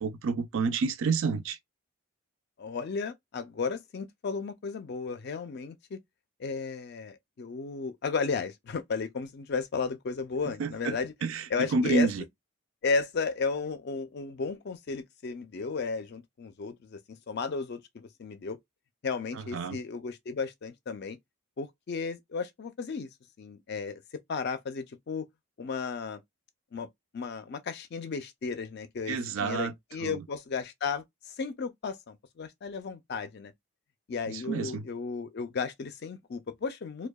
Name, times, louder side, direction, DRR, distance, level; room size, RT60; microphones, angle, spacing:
voice 1, 0.0-1.6 10.6-11.0 11.2-11.4 11.7-12.2 19.5-19.8 29.1-29.7 30.0-30.2 34.3-34.8, right 4 dB, 65° right, 0.4 m, -29 dB
voice 2, 2.6-6.0 6.4-11.1 11.5-12.1 12.8-18.6 19.0-21.2 21.6-23.1 23.4-24.0 24.3-25.3 25.6-26.2 26.7-26.9 27.1-33.5 34.1-37.1, left 4 dB, 45° left, 0.4 m, -34 dB
2.6 x 2.1 x 2.2 m
head